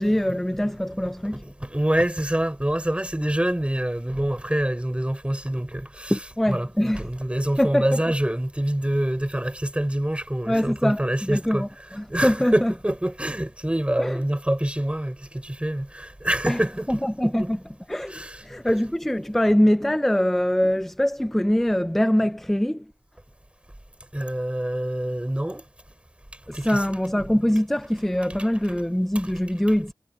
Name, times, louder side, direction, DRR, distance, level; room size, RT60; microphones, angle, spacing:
voice 1, 0.0-1.4 6.1-7.0 7.6-8.0 10.5-11.7 11.9-12.7 14.0-14.2 16.5-16.6 16.9-17.6 17.9-22.9 26.5-29.9, equal, 5° left, 0.3 m, -23 dB
voice 2, 1.4-6.2 6.5-17.5 18.1-18.4 24.1-25.6 26.5-26.9, right 1 dB, 15° right, 4.4 m, -26 dB
wide cardioid pair, 85°, 9 cm